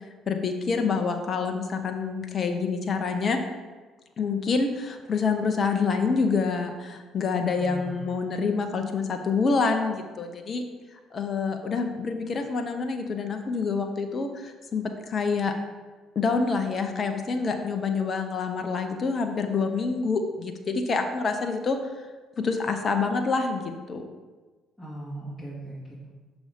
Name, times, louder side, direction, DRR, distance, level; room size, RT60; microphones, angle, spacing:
voice 1, 0.3-3.4 4.2-10.6 11.1-15.5 16.2-21.8 22.4-24.0, left 4 dB, 45° left, 5 dB, 0.7 m, -27 dB
voice 2, 7.6-8.0 24.8-26.1, right 1 dB, ahead, -7 dB, 1.9 m, -38 dB
6.2 x 4.1 x 5.0 m, 1.3 s
hypercardioid pair, 50°, 0 cm